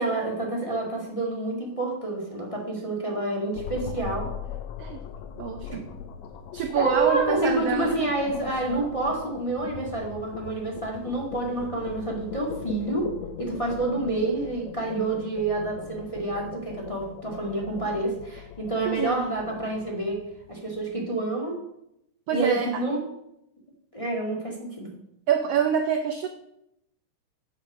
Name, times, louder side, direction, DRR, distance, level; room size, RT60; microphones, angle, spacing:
voice 1, 0.0-4.3 5.7-5.8 6.7-13.1 13.4-21.6 22.3-23.0 23.9-24.9, right 2 dB, 15° left, -2 dB, 1.4 m, -28 dB
sound 1, 3.6-20.8, left 8 dB, 75° left, 1.8 m, -40 dB
voice 2, 5.4-5.8 6.5-8.1 15.0-15.1 18.8-19.3 22.3-22.8 25.3-26.3, right 7 dB, 80° right, 6 dB, 1.3 m, -26 dB
8.2 x 6.4 x 7.3 m, 0.80 s
omnidirectional pair, 3.5 m